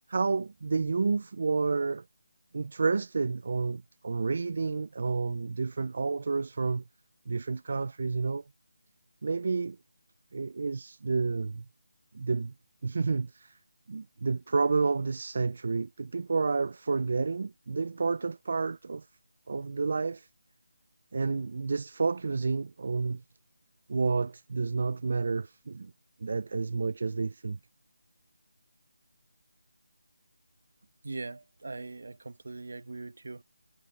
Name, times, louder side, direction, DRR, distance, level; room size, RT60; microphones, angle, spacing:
voice 1, 0.1-2.0 2.5-6.8 7.3-8.4 9.2-9.8 10.3-11.7 12.1-12.5 12.8-13.6 13.9-19.1 19.5-20.3 21.1-23.2 23.9-25.9 26.2-27.6, right 4 dB, 50° right, 0.3 m, -30 dB
voice 2, 31.0-33.4, right 3 dB, 65° right, 1.2 m, -41 dB
figure-of-eight pair, 170°, 0 cm